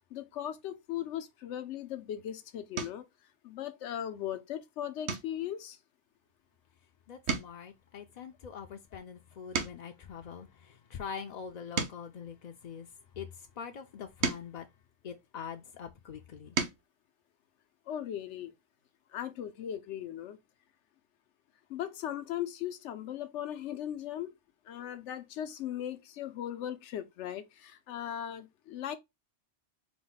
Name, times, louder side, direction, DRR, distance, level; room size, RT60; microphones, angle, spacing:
voice 1, 0.1-3.0 3.4-5.8 17.9-18.5 19.1-20.4 21.7-24.3 24.7-29.0, left 10 dB, 85° left, 0.9 m, -38 dB
sound 1, 1.9-2.2 2.7-3.1 3.6-4.0 4.3-4.5 5.0-6.9 7.1-10.1 10.7-13.2 13.8-15.7 16.2-16.9 18.3-18.4 18.7-18.9, right 5 dB, 70° right, 1.1 m, -39 dB
voice 2, 7.1-12.9 13.1-14.7 15.0-16.5, left 7 dB, 55° left, 0.5 m, -44 dB
4.8 x 2.1 x 3.8 m
omnidirectional pair, 1.2 m